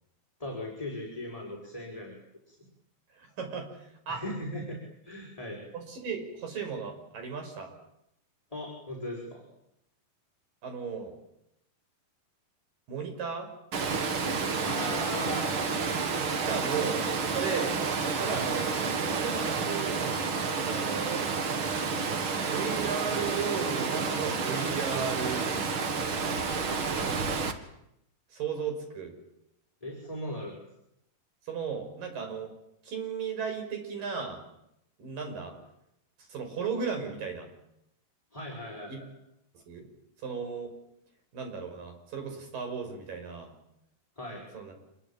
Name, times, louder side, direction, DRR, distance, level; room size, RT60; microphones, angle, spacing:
voice 1, 0.4-2.1 2.5-2.6 4.1-5.6 8.5-9.4 14.6-15.6 29.8-30.6 38.3-38.9 44.2-44.5, left 1 dB, 10° left, -2 dB, 5.2 m, -38 dB
voice 2, 3.1-4.2 5.7-7.7 10.6-11.2 12.9-13.5 16.2-17.8 18.2-20.0 20.7-21.3 22.4-25.5 27.0-27.5 28.3-29.2 31.5-32.5 32.8-34.4 35.0-35.5 36.3-37.5 38.9-39.0 39.5-39.9 40.2-40.7 41.3-43.5 44.5-44.7, right 6 dB, 80° right, 5 dB, 7.2 m, -35 dB
Water, 13.7-27.5, right 5 dB, 45° right, 2.3 m, -30 dB
27.0 x 21.5 x 8.9 m, 0.80 s
omnidirectional pair, 3.9 m